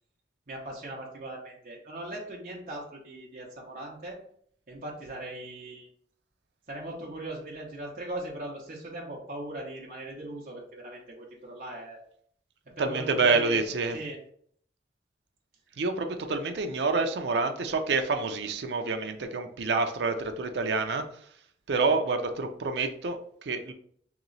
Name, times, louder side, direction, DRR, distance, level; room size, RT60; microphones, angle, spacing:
voice 1, 0.5-4.2 4.7-5.9 6.7-12.0 12.8-13.7 13.9-14.2, right 1 dB, 45° right, -2 dB, 0.8 m, -39 dB
voice 2, 12.8-14.0 15.8-21.1 21.7-23.7, right 4 dB, 70° right, 6 dB, 0.5 m, -27 dB
3.0 x 3.0 x 3.9 m, 0.62 s
head